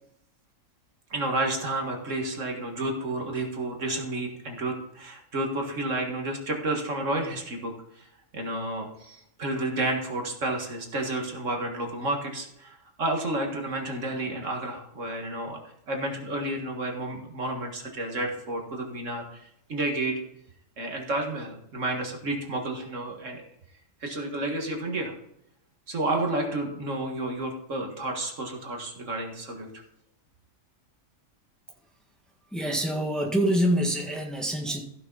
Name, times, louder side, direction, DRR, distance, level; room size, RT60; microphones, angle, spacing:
voice 1, 1.1-8.1 8.3-15.6 15.9-19.4 19.7-20.2 20.8-23.4 24.0-25.1 25.9-29.7, right 2 dB, 65° right, 2 dB, 2.1 m, -31 dB
voice 2, 32.5-34.8, right 1 dB, ahead, 0 dB, 1.7 m, -26 dB
15.0 x 6.6 x 4.0 m, 0.76 s
omnidirectional pair, 1.4 m